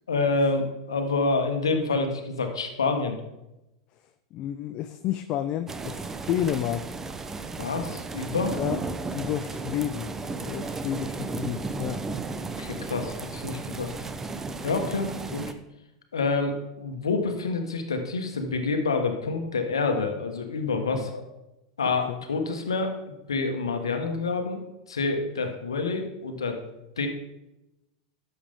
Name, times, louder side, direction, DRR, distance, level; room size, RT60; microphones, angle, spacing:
voice 1, 0.1-3.2 7.6-8.6 12.6-13.9 14.6-15.5 16.1-21.2 21.8-22.9 23.3-24.6 24.9-26.6 27.0-27.1, left 3 dB, 85° left, 5 dB, 1.4 m, -27 dB
voice 2, 4.3-6.8 8.5-8.8 9.1-10.1 10.4-12.1 20.9-21.1 22.1-22.2, left 11 dB, 45° left, 10 dB, 0.5 m, -30 dB
sound 1, 5.7-15.5, right 3 dB, 15° right, 0.8 m, -34 dB
11.5 x 7.1 x 3.7 m, 0.92 s
hypercardioid pair, 95°, 2 cm